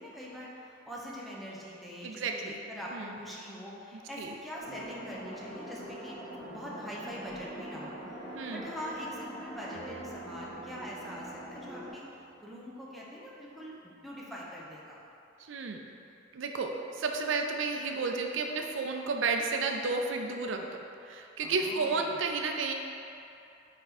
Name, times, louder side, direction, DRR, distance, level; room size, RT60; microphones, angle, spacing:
voice 1, 0.0-6.2 6.5-15.0 21.4-22.2, equal, ahead, -6 dB, 0.8 m, -43 dB
voice 2, 2.0-2.6 2.9-3.1 4.2-4.3 8.3-8.6 15.4-15.8 16.3-20.7 21.0-22.7, right 4 dB, 75° right, 3 dB, 0.4 m, -32 dB
sound 1, 4.6-11.9, right 1 dB, 20° right, 1.4 m, -44 dB
sound 2, 4.7-12.8 13.4-13.5 13.7-14.0, right 1 dB, 60° left, 0.7 m, -52 dB
6.0 x 4.4 x 4.1 m, 2.7 s
head